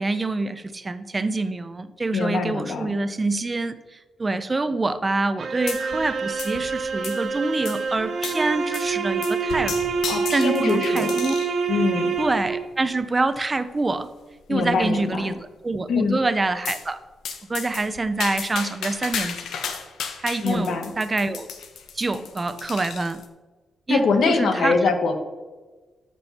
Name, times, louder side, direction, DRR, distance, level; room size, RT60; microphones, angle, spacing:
voice 1, 0.0-10.0 10.3-11.3 12.2-14.1 14.5-17.0 17.5-19.4 20.2-21.5 21.9-23.2 23.9-24.8, right 3 dB, 20° right, 12 dB, 0.5 m, -26 dB
voice 2, 2.1-2.9 10.1-11.1 11.7-12.1 14.5-15.3 15.9-16.2 20.4-20.9 23.9-25.2, left 4 dB, 70° left, 6 dB, 1.3 m, -23 dB
sound 1, 5.4-12.7, right 5 dB, 45° right, 1.0 m, -26 dB
sound 2, 5.7-6.1 6.4-7.3 7.6-7.8 8.2-8.4 8.7-8.9 9.2-11.6 12.2-12.5 13.2-13.3 13.6-13.7 14.0-14.1 14.5-15.0 16.6-16.9 17.2-23.3, left 7 dB, 90° left, 1.1 m, -34 dB
13.0 x 6.2 x 4.2 m, 1.3 s
wide cardioid pair, 150°, 0 cm